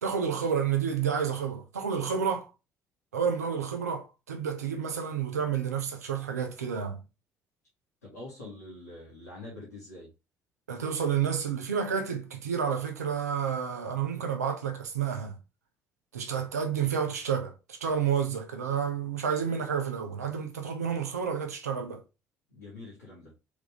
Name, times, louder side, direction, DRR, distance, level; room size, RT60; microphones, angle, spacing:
voice 1, 0.0-2.5 3.1-7.0 10.7-15.4 16.1-22.0, right 7 dB, 85° right, 0.7 m, -30 dB
voice 2, 8.0-10.1 22.5-23.3, left 2 dB, 85° left, 1.6 m, -45 dB
3.6 x 3.6 x 3.3 m
figure-of-eight pair, 50°, 8 cm